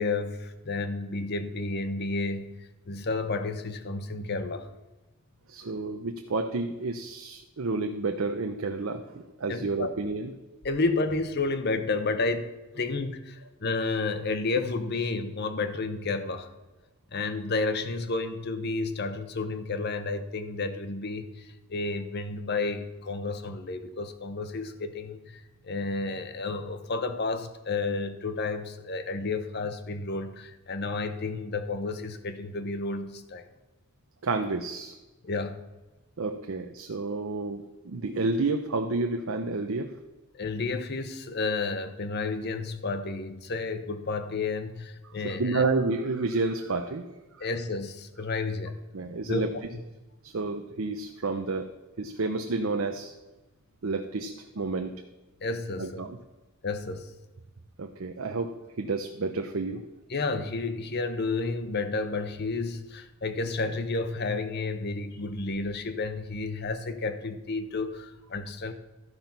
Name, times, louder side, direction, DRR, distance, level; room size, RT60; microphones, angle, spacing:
voice 1, 0.0-2.6 2.9-4.7 9.5-9.9 10.6-12.5 12.7-16.5 17.1-33.4 35.2-35.6 40.3-45.7 47.4-48.8 49.3-49.5 55.4-56.0 56.6-57.1 60.1-68.7, left 3 dB, 45° left, 9 dB, 0.8 m, -31 dB
voice 2, 5.5-10.3 34.2-34.9 36.2-39.9 45.0-47.1 47.4-47.5 48.9-49.5 50.2-51.7 52.0-53.1 53.8-54.9 55.8-56.2 57.8-59.8, right 3 dB, 65° right, 5 dB, 0.6 m, -30 dB
12.5 x 5.3 x 5.9 m, 1.1 s
head